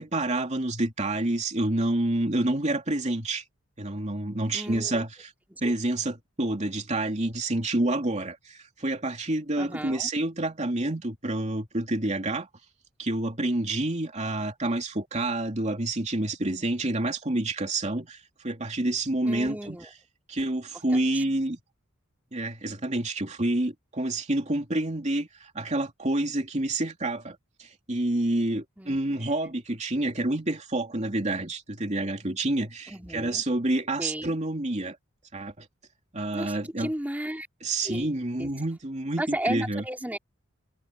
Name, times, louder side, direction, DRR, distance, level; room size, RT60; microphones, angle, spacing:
voice 1, 0.0-3.4 3.8-5.1 5.6-12.5 13.0-18.2 18.4-19.8 20.3-21.6 22.3-25.3 25.5-35.0 35.3-35.7 36.1-36.9 37.6-39.8, right 2 dB, 35° right, 2.8 m, -28 dB
voice 2, 4.5-5.0 5.5-5.7 9.6-10.1 19.2-19.9 20.7-21.2 28.8-29.3 32.9-33.4 34.0-34.3 36.3-37.5 37.8-38.1 38.4-38.5 39.2-40.2, right 1 dB, 10° right, 2.8 m, -34 dB
head